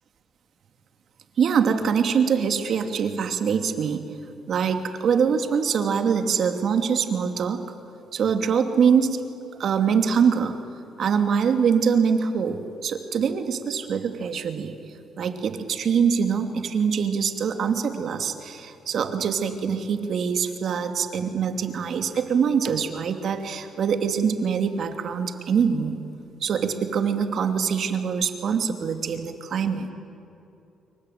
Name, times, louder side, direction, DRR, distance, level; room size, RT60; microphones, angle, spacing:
voice 1, 1.4-4.0 4.5-7.7 8.1-9.2 9.6-10.6 11.0-14.8 15.2-26.0 26.4-29.9, right 6 dB, 60° right, 7 dB, 2.6 m, -24 dB
27.0 x 23.5 x 9.3 m, 2.7 s
cardioid pair, 90°, 0 cm